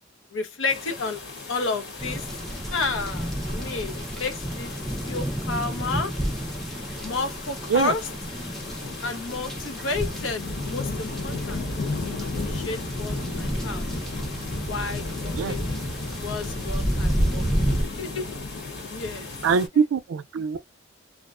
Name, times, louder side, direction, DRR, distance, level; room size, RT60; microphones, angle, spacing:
voice 1, 0.3-1.2 1.5-2.3 2.7-4.7 5.1-6.1 7.0-8.1 9.0-11.6 12.1-13.9 14.6-15.7 16.1-18.3 18.9-19.8, left 3 dB, 80° left, 0.6 m, -31 dB
sound 1, 0.7-19.7, left 3 dB, 60° left, 1.1 m, -35 dB
sound 2, 2.0-17.8, equal, ahead, 0.5 m, -31 dB
voice 2, 19.4-20.6, right 6 dB, 90° right, 0.4 m, -23 dB
2.5 x 2.1 x 2.4 m
head